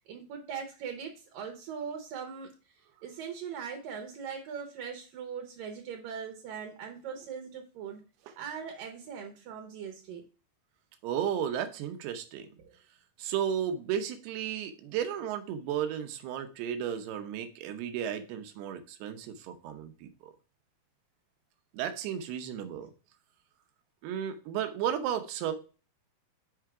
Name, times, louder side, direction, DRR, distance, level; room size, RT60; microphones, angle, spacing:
voice 1, 0.0-2.5 3.0-8.0 8.4-10.2 12.6-12.7, right 7 dB, 70° right, 4 dB, 2.3 m, -40 dB
voice 2, 11.0-12.5 13.2-20.3 21.7-22.9 24.0-25.5, right 9 dB, 85° right, 8 dB, 2.9 m, -34 dB
6.8 x 4.6 x 4.8 m, 0.36 s
omnidirectional pair, 4.5 m